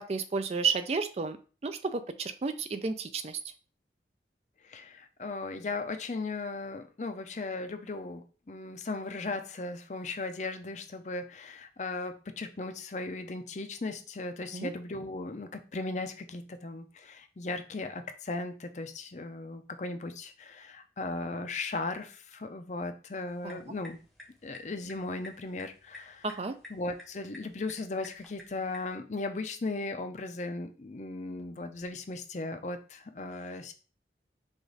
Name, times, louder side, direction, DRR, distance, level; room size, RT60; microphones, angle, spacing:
voice 1, 0.0-1.4 1.6-3.5 14.5-14.7 23.4-23.6 26.2-26.5, right 4 dB, 35° right, 9 dB, 0.3 m, -32 dB
voice 2, 4.6-24.0 24.4-26.2 26.7-33.7, left 3 dB, 40° left, 8 dB, 0.5 m, -37 dB
sound 1, 23.3-28.9, left 2 dB, ahead, 0.8 m, -52 dB
5.0 x 2.5 x 3.8 m, 0.36 s
head